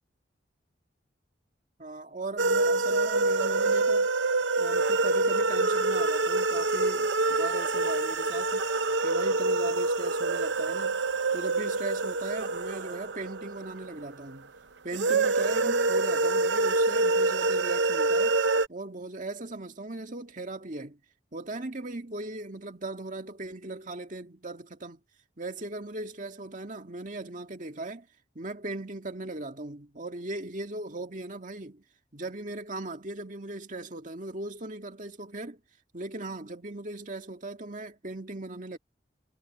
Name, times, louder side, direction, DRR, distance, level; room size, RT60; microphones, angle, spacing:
voice 1, 1.8-4.1 4.6-8.6 9.0-11.0 11.3-14.5 14.8-18.4 18.7-21.0 21.3-25.0 25.4-28.1 28.4-31.8 32.1-35.6 35.9-38.8, right 2 dB, 45° right, 2.0 m, -38 dB
sound 1, 2.4-14.1 14.9-18.7, right 3 dB, 75° right, 0.7 m, -26 dB
head